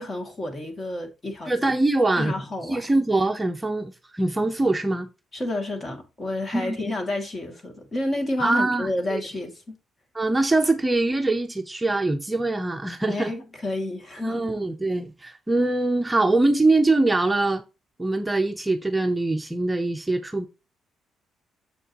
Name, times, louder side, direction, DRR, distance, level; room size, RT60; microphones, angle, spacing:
voice 1, 0.0-1.5 2.2-2.9 5.3-9.8 13.1-14.4, left 1 dB, 30° left, 2.4 m, -30 dB
voice 2, 1.5-2.3 2.7-5.1 6.5-6.8 8.4-9.2 10.1-13.3 14.2-17.6 18.0-20.5, right 2 dB, 15° right, 0.8 m, -23 dB
7.1 x 6.5 x 3.0 m
cardioid pair, 90°, 0 cm